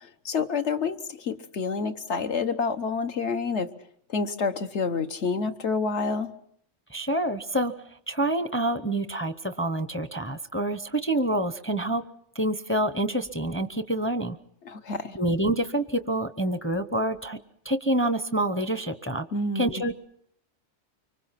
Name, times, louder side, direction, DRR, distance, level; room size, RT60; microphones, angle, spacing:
voice 1, 0.0-3.7 4.1-6.3 14.7-15.2 19.3-19.8, left 4 dB, 65° left, 7 dB, 1.4 m, -28 dB
voice 2, 6.9-7.7 8.1-12.0 12.3-14.4 15.1-17.4 17.6-19.3 19.5-19.9, right 1 dB, 10° left, 10 dB, 0.7 m, -27 dB
25.0 x 24.5 x 5.8 m, 0.68 s
omnidirectional pair, 1.3 m